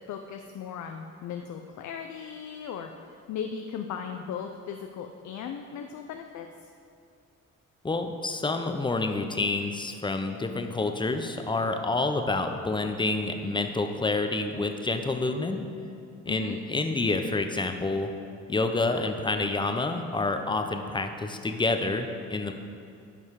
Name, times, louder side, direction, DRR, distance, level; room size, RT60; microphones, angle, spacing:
voice 1, 0.0-6.7 16.3-16.6, left 7 dB, 70° left, 5 dB, 0.6 m, -37 dB
voice 2, 7.8-15.6 16.3-18.1 18.5-22.5, left 3 dB, 15° left, 6 dB, 0.8 m, -28 dB
12.0 x 5.5 x 4.8 m, 2.4 s
cardioid pair, 90°, 30 cm